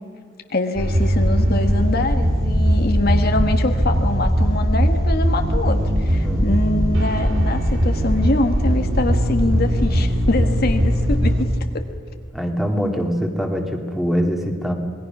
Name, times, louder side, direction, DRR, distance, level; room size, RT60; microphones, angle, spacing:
voice 1, 0.5-11.5 11.7-11.8, left 2 dB, 50° left, 5 dB, 1.4 m, -24 dB
sound 1, 0.8-11.4, equal, 75° right, 3.7 m, -19 dB
voice 2, 6.2-6.6 12.3-14.7, equal, ahead, 3 dB, 2.3 m, -23 dB
27.0 x 20.5 x 6.1 m, 2.1 s
head